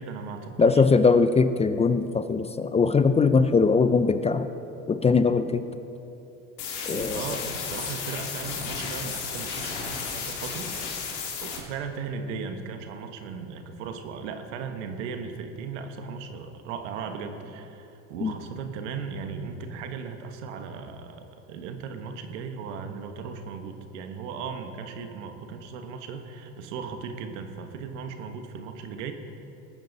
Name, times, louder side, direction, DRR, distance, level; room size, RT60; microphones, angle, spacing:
voice 1, 0.0-0.8 6.7-10.7 11.4-29.1, right 5 dB, 75° right, 6 dB, 1.4 m, -37 dB
voice 2, 0.6-4.5 4.9-5.7 6.9-7.2 18.2-18.3, left 4 dB, 15° left, 11 dB, 0.5 m, -21 dB
sound 1, 6.6-11.6, left 6 dB, 75° left, 2.5 m, -33 dB
19.5 x 9.1 x 4.0 m, 2.9 s
hypercardioid pair, 85°, 37 cm